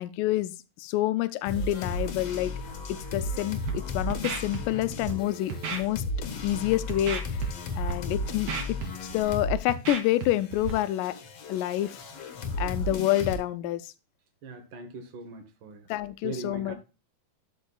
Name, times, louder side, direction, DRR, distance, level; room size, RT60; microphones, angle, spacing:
voice 1, 0.0-2.5 2.9-6.0 6.4-7.4 7.8-11.2 11.5-12.0 12.6-13.9 15.9-16.8, left 14 dB, 85° left, 2.1 m, -28 dB
sound 1, 1.5-9.7 9.9-13.4, left 1 dB, 60° left, 2.1 m, -34 dB
Scratching (performance technique), 3.5-3.7 4.1-4.6 4.9-5.1 5.5-5.8 6.3-6.6 6.9-7.5 7.7-7.9 8.3-9.3 9.7-10.3 10.5-10.7, right 6 dB, 60° right, 2.5 m, -33 dB
voice 2, 14.4-15.9 16.2-16.7, right 3 dB, 80° right, 1.0 m, -40 dB
12.0 x 5.4 x 2.3 m
omnidirectional pair, 3.8 m